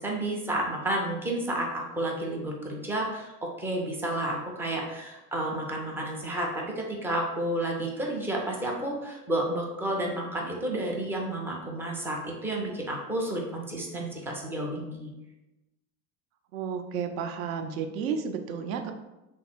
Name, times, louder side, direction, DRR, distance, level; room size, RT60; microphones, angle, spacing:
voice 1, 0.0-6.5 6.8-15.1, right 1 dB, 5° right, -2 dB, 0.3 m, -31 dB
voice 2, 16.5-18.9, right 6 dB, 60° right, 6 dB, 0.6 m, -32 dB
3.3 x 2.3 x 4.3 m, 1.0 s
figure-of-eight pair, 70°, 48 cm